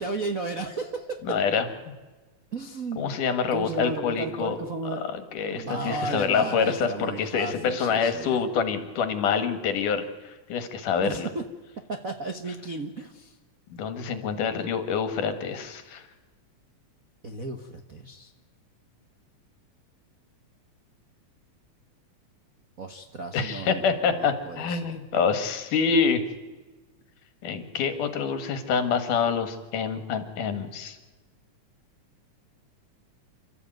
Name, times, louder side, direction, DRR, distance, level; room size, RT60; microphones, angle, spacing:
voice 1, 0.0-1.2 2.5-3.1 3.5-5.0 5.5-8.4 11.0-11.4 11.9-13.4 17.2-18.3 22.8-23.8 24.1-25.0, right 3 dB, 60° right, 6 dB, 0.9 m, -34 dB
voice 2, 1.2-1.7 3.0-4.6 5.1-11.3 13.7-16.0 23.3-26.2 27.4-31.0, left 6 dB, 85° left, 9 dB, 3.4 m, -26 dB
29.0 x 13.5 x 9.2 m, 1.2 s
omnidirectional pair, 3.6 m